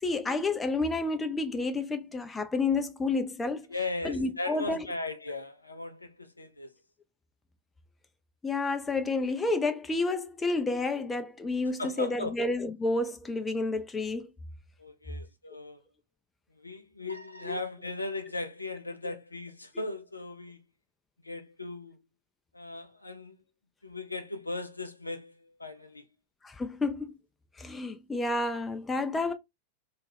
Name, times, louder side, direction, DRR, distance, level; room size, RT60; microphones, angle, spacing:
voice 1, 0.0-3.7 4.0-4.9 8.4-14.3 17.4-17.6 26.4-27.1 27.6-29.3, left 3 dB, 15° left, 0.4 m, -30 dB
voice 2, 3.7-6.7 11.8-12.3 14.8-15.8 16.6-20.6 21.2-22.0 22.5-23.4 23.8-26.1, left 2 dB, 85° left, 0.4 m, -37 dB
2.3 x 2.2 x 3.2 m
figure-of-eight pair, 90°, 0 cm